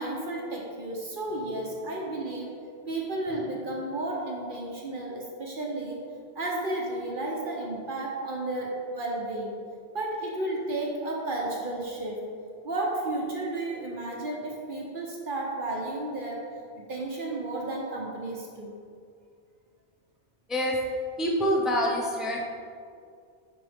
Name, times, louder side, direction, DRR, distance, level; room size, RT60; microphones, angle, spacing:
voice 1, 0.0-2.5 2.9-6.0 6.3-9.5 9.9-12.2 12.6-16.4 16.9-18.7, right 2 dB, 55° right, -1 dB, 1.0 m, -32 dB
voice 2, 21.2-22.5, equal, ahead, -1 dB, 0.7 m, -26 dB
9.5 x 4.3 x 3.5 m, 2.2 s
omnidirectional pair, 1.1 m